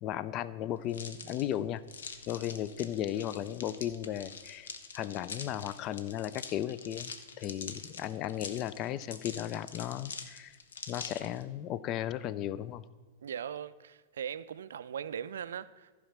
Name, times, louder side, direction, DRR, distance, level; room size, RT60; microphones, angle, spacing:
voice 1, 0.0-1.8 2.3-4.7 4.9-10.5 10.9-12.8, left 11 dB, 35° left, 0.4 m, -35 dB
sound 1, 0.9-11.4, left 5 dB, 65° left, 0.8 m, -45 dB
voice 2, 13.2-15.9, right 8 dB, 65° right, 0.3 m, -39 dB
14.5 x 4.9 x 5.7 m
figure-of-eight pair, 100°, 0 cm